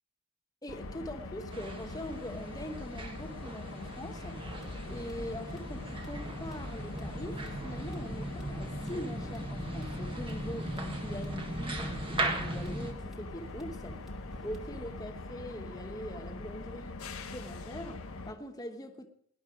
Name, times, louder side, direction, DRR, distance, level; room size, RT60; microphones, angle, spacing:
voice 1, 0.6-4.5 4.9-14.0 14.4-17.0 17.3-19.1, left 1 dB, 15° left, 1.2 m, -42 dB
sound 1, 0.7-18.3, left 2 dB, 70° left, 1.3 m, -43 dB
sound 2, 1.5-12.9, right 1 dB, 25° right, 1.6 m, -39 dB
sound 3, 4.5-14.7, equal, ahead, 1.9 m, -49 dB
18.0 x 11.0 x 5.0 m
head